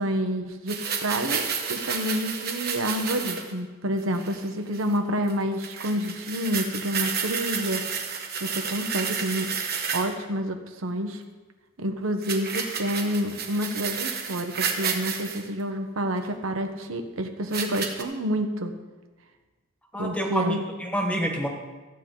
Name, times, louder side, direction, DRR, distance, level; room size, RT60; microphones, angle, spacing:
voice 1, 0.0-1.4 1.7-7.8 8.4-9.5 9.9-11.2 11.8-18.7 20.0-20.6, equal, 90° right, 6 dB, 1.1 m, -28 dB
sound 1, 0.7-3.5 4.0-4.4 4.7-4.9 5.3-5.4 5.6-10.1 12.2-15.4 16.2-16.3 17.5-18.0, right 6 dB, 50° right, 1.3 m, -31 dB
voice 2, 19.9-21.5, equal, 5° left, 2 dB, 1.3 m, -28 dB
14.0 x 8.5 x 3.9 m, 1.3 s
head